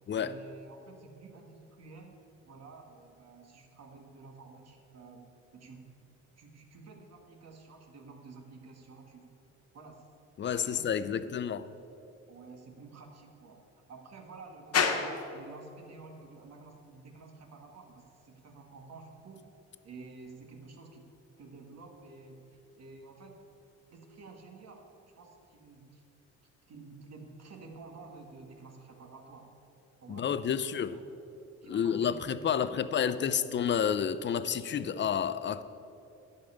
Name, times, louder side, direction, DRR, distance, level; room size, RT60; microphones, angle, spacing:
voice 1, 0.1-2.2 2.4-5.9 6.4-9.3 9.7-10.1 10.4-11.3 12.3-19.5 19.8-21.0 21.4-23.4 23.9-26.0 26.7-29.6 30.0-31.0 31.6-33.6, right 3 dB, 55° right, 1.7 m, -51 dB
voice 2, 10.4-11.7 30.1-31.0 31.7-35.6, left 8 dB, 40° left, 0.5 m, -30 dB
sound 1, 14.7-32.2, left 6 dB, 55° left, 1.1 m, -42 dB
11.5 x 5.5 x 8.2 m
cardioid pair, 90°, 30 cm